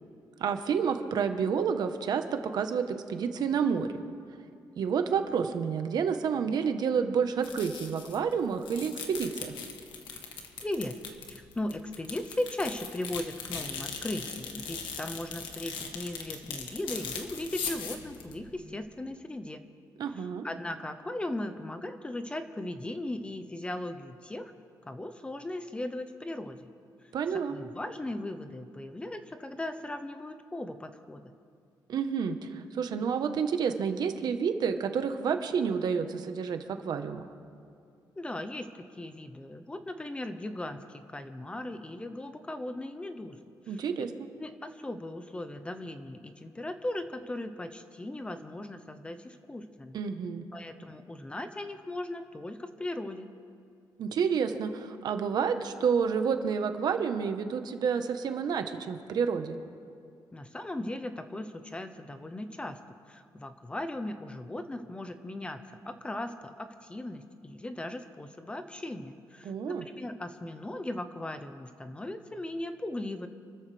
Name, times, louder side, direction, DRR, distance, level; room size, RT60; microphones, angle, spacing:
voice 1, 0.4-3.9 4.8-9.5 20.0-20.5 27.1-27.6 31.9-37.2 43.7-44.3 49.9-50.4 54.0-59.6 69.4-69.9, right 6 dB, 60° right, 7 dB, 1.1 m, -29 dB
sound 1, 7.4-8.3 8.6-18.8, left 6 dB, 85° left, 1.7 m, -39 dB
voice 2, 10.6-11.0 11.3-19.6 20.2-24.5 24.9-26.7 27.5-31.3 38.2-43.4 43.7-43.8 44.4-50.0 50.5-53.3 60.3-62.8 63.1-73.3, left 1 dB, 15° left, 9 dB, 0.8 m, -38 dB
29.0 x 13.5 x 3.4 m, 2.4 s
cardioid pair, 145°, 8 cm